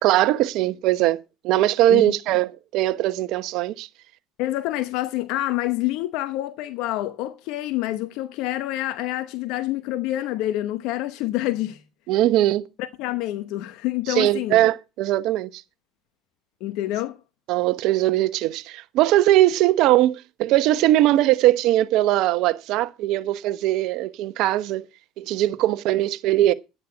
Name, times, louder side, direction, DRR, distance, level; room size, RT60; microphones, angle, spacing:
voice 1, 0.0-1.2 1.4-3.9 12.1-12.7 14.1-15.6 17.5-24.9 25.2-26.5, right 14 dB, 70° right, 0.9 m, -20 dB
voice 2, 4.4-11.8 12.8-14.7 16.6-17.2, left 15 dB, 75° left, 0.9 m, -27 dB
11.0 x 9.4 x 5.6 m
supercardioid pair, 90°, 0 cm